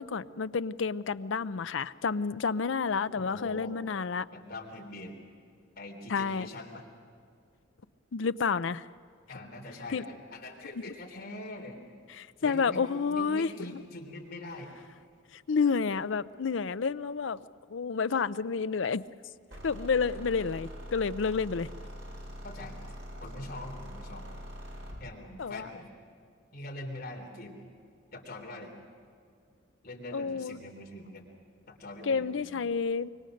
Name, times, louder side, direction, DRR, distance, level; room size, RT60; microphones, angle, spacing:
voice 1, 0.0-4.3 6.1-6.5 8.1-8.8 9.9-10.0 12.2-13.8 15.3-17.4 17.7-19.0 19.6-21.7 25.4-25.7 30.1-30.6 32.0-33.1, left 5 dB, 70° left, 14 dB, 0.5 m, -30 dB
voice 2, 3.1-3.8 4.3-5.1 5.8-6.8 9.3-11.8 12.4-12.8 13.1-14.7 22.4-22.7 23.2-24.2 25.0-26.0 26.5-27.6 28.1-28.7 29.8-31.3 31.7-32.7, left 1 dB, 50° left, 1 dB, 3.6 m, -43 dB
sound 1, 19.5-25.1, equal, 75° right, 5.3 m, -43 dB
25.0 x 24.0 x 6.4 m, 2.3 s
head